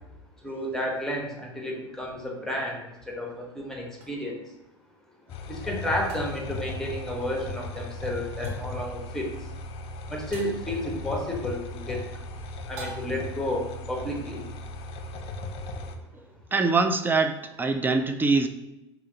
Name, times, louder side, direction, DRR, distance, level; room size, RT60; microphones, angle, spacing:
voice 1, 0.4-4.4 5.5-9.5 10.1-12.0 12.7-14.5, left 1 dB, 5° left, 0 dB, 1.0 m, -32 dB
sound 1, 4.0-4.1 6.1-6.6 8.4-8.8 10.3-10.7 12.8-13.4, right 2 dB, 65° right, 1.0 m, -43 dB
sound 2, 5.3-16.0, left 2 dB, 40° left, 0.5 m, -37 dB
voice 2, 16.5-18.5, right 3 dB, 15° right, 7 dB, 0.3 m, -23 dB
4.9 x 2.9 x 2.7 m, 0.94 s
hypercardioid pair, 85°, 15 cm